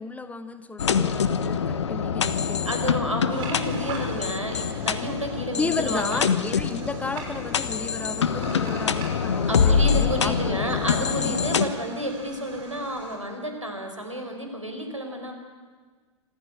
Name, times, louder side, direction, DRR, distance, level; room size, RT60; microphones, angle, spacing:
voice 1, 0.0-3.0 5.5-10.7 11.2-11.4, left 3 dB, 10° left, 11 dB, 1.2 m, -33 dB
sound 1, 0.8-11.6, left 6 dB, 65° left, 1.3 m, -25 dB
voice 2, 2.3-6.2 9.5-15.3, equal, 90° right, 4 dB, 5.1 m, -31 dB
sound 2, 3.2-13.2, right 3 dB, 30° right, 6.7 m, -41 dB
26.5 x 15.0 x 9.9 m, 1.4 s
figure-of-eight pair, 100°, 16 cm